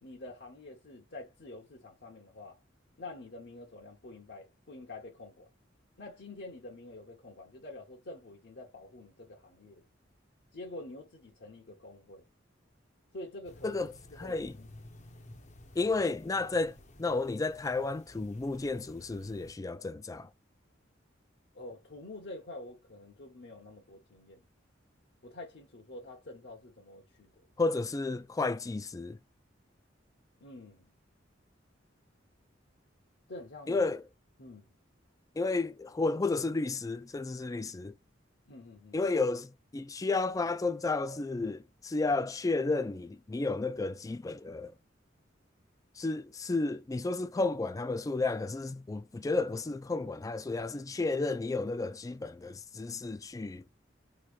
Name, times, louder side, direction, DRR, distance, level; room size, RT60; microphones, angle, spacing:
voice 1, 0.0-2.6 3.0-5.5 6.0-9.8 10.5-12.3 13.1-14.7 21.5-24.5 25.2-27.5 30.4-30.9 33.3-33.8 34.4-34.7 38.5-39.0, left 2 dB, 65° left, 1.1 m, -47 dB
sound 1, 13.4-19.5, left 1 dB, 40° left, 0.8 m, -53 dB
voice 2, 14.2-14.6 15.8-20.3 27.6-29.2 33.7-34.0 35.4-37.9 38.9-44.7 46.0-53.6, left 3 dB, 20° left, 0.3 m, -32 dB
3.6 x 3.2 x 2.3 m
head